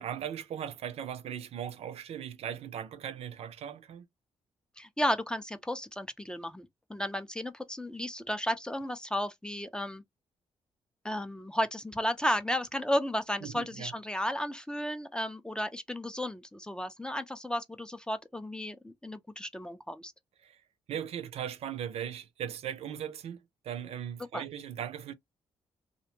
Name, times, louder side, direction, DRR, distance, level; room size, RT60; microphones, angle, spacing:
voice 1, 0.0-4.1 13.4-13.9 20.4-20.6 20.9-25.1, right 9 dB, 70° right, 0.5 m, -38 dB
voice 2, 4.8-10.0 11.0-20.1 24.3-24.4, equal, 10° left, 0.4 m, -33 dB
2.5 x 2.1 x 2.8 m
cardioid pair, 90°, 11 cm